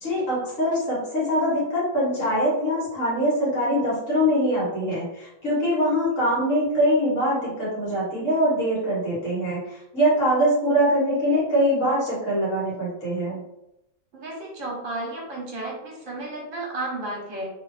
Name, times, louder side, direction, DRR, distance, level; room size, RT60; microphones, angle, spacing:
voice 1, 0.0-13.4, equal, 65° left, -8 dB, 2.0 m, -23 dB
voice 2, 14.1-17.5, right 2 dB, 65° right, -2 dB, 1.3 m, -33 dB
3.5 x 2.5 x 3.2 m, 0.86 s
omnidirectional pair, 1.5 m